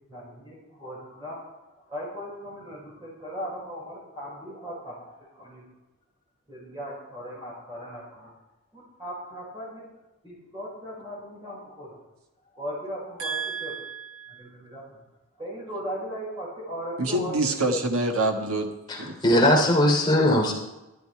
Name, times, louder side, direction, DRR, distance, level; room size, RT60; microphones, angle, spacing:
voice 1, 0.1-1.4 1.9-5.6 6.5-8.3 8.7-9.9 10.2-12.0 12.5-13.7 14.3-15.0 15.4-17.3, equal, 20° right, -6 dB, 4.8 m, -38 dB
voice 2, 13.2-14.4 17.0-18.7 19.0-19.2, right 2 dB, 85° right, 3 dB, 1.5 m, -27 dB
voice 3, 18.9-20.5, left 1 dB, 20° left, -2 dB, 3.0 m, -20 dB
13.5 x 12.5 x 4.7 m, 0.99 s
head